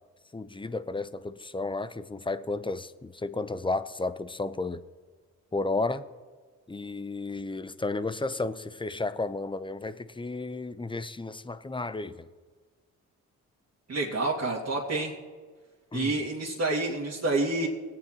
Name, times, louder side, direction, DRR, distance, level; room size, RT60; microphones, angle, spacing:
voice 1, 0.3-4.8 5.5-6.0 6.7-12.3 15.9-16.2, left 3 dB, 15° left, 0.7 m, -33 dB
voice 2, 13.9-15.1 15.9-17.7, right 2 dB, 40° right, 2.2 m, -28 dB
20.0 x 8.6 x 2.9 m
hypercardioid pair, 45°, 38 cm